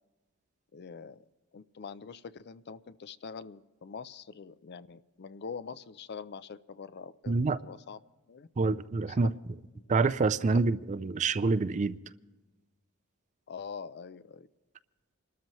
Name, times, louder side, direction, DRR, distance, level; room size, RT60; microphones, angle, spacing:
voice 1, 0.7-1.3 1.5-8.0 8.3-8.5 9.1-9.4 9.7-9.9 10.5-10.6 13.5-14.5, left 5 dB, 50° left, 0.5 m, -44 dB
voice 2, 7.3-7.6 8.6-9.3 9.9-12.0, right 3 dB, 35° right, 0.4 m, -27 dB
27.0 x 13.0 x 3.1 m
head